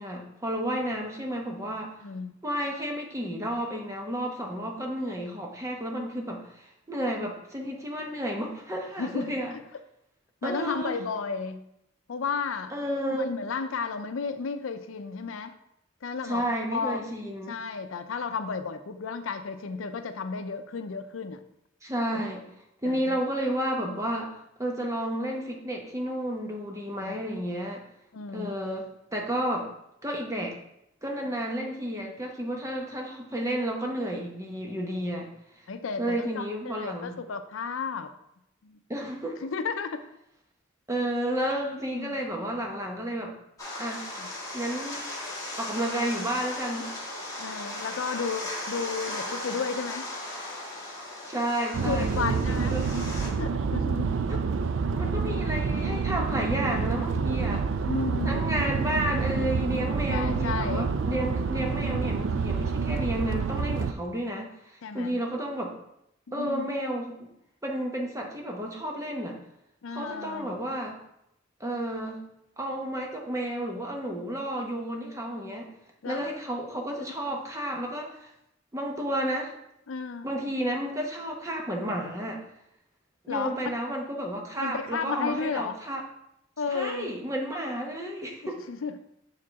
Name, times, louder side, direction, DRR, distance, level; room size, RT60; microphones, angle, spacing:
voice 1, 0.0-2.0 2.4-9.5 10.4-11.0 12.7-13.3 16.2-17.6 21.8-22.5 22.8-27.8 28.3-29.7 30.0-30.6 31.0-35.3 36.0-37.2 38.9-39.4 40.9-43.3 43.8-44.1 44.5-45.1 45.6-46.9 51.3-52.9 54.3-54.4 54.9-57.7 58.2-65.7 66.3-67.3 67.6-69.4 69.9-71.0 71.6-72.2 72.6-75.7 76.0-78.3 78.7-79.5 80.2-82.4 83.2-86.0 86.7-88.6, right 1 dB, 15° right, 1 dB, 0.8 m, -31 dB
voice 2, 2.0-2.3 9.0-9.3 10.4-11.6 12.1-12.7 13.1-15.5 16.0-16.4 16.7-17.0 17.5-21.4 22.1-22.3 22.8-23.2 23.8-23.9 27.0-27.2 28.1-28.5 35.7-38.1 38.6-38.8 39.4-40.0 41.9-42.2 44.2-44.3 47.4-50.1 51.8-52.8 53.4-54.1 57.8-58.4 60.1-60.9 64.8-65.2 66.3-66.7 69.8-70.5 76.0-76.3 77.1-77.2 79.9-80.3 83.3-83.5 84.6-85.8 86.6-87.1 88.7-88.9, left 5 dB, 85° left, 9 dB, 0.5 m, -33 dB
sound 1, 43.6-53.3, left 1 dB, 15° left, 1.7 m, -37 dB
sound 2, 51.7-63.9, right 5 dB, 75° right, 0.4 m, -28 dB
6.5 x 4.8 x 3.5 m, 0.80 s
head